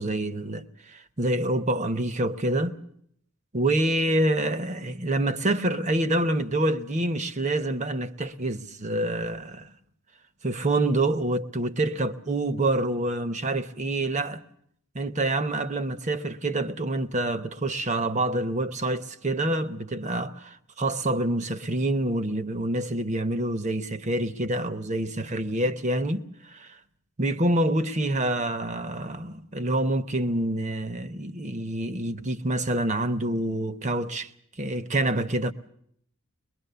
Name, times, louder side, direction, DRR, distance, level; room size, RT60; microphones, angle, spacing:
voice 1, 0.0-2.8 3.5-9.7 10.4-14.4 14.9-26.8 27.2-34.3 34.6-35.5, right 1 dB, 35° right, 0.9 m, -27 dB
22.0 x 22.0 x 6.8 m
head